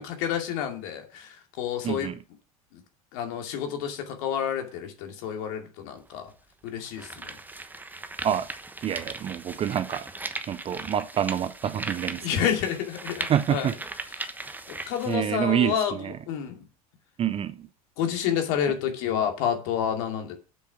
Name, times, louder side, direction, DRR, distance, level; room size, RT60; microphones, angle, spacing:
voice 1, 0.0-2.1 2.7-2.8 3.1-6.3 6.6-7.2 12.2-13.7 14.7-16.6 18.0-20.4, left 9 dB, 60° left, 2.4 m, -29 dB
voice 2, 1.8-2.1 8.2-8.5 8.8-10.1 10.5-12.2 13.3-13.7 15.1-16.2 17.2-17.7, right 10 dB, 30° right, 0.7 m, -27 dB
sound 1, 6.0-6.1 6.7-15.2, right 2 dB, 10° right, 1.1 m, -38 dB
7.9 x 6.6 x 6.1 m
figure-of-eight pair, 75°, 19 cm